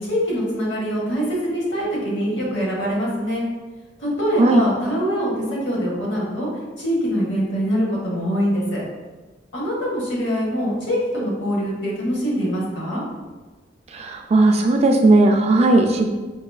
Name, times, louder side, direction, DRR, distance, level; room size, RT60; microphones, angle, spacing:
voice 1, 0.0-3.4 4.0-6.5 6.8-8.8 9.5-13.0, equal, 85° left, -4 dB, 1.1 m, -23 dB
voice 2, 13.9-16.1, right 2 dB, 35° right, 3 dB, 0.3 m, -16 dB
4.7 x 2.4 x 2.2 m, 1.3 s
head